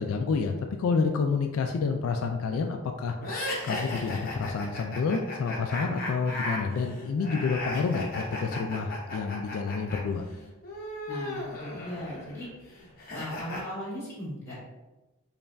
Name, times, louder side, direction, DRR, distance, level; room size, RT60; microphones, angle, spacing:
voice 1, 0.0-3.2 3.6-10.3, left 4 dB, 75° left, 4 dB, 0.3 m, -29 dB
sound 1, 3.2-10.0 10.2-13.6, left 2 dB, 45° left, 0.8 m, -36 dB
voice 2, 11.1-12.5 13.1-14.6, equal, 15° left, -8 dB, 1.4 m, -38 dB
5.2 x 2.4 x 2.2 m, 1.1 s
head